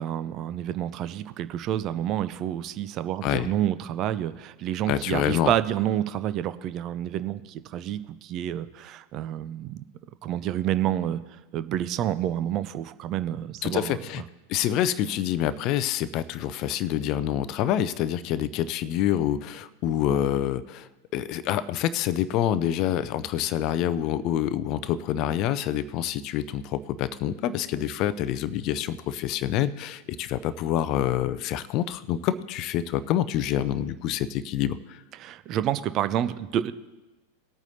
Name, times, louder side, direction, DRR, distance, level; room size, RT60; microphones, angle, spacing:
voice 1, 0.0-9.8 10.2-11.2 11.5-14.0 35.1-36.7, right 11 dB, 35° right, 13 dB, 0.5 m, -29 dB
voice 2, 4.9-5.5 13.6-14.2 14.5-35.0, left 11 dB, 40° left, 15 dB, 0.5 m, -27 dB
20.0 x 9.0 x 2.8 m, 1.1 s
figure-of-eight pair, 90°, 0 cm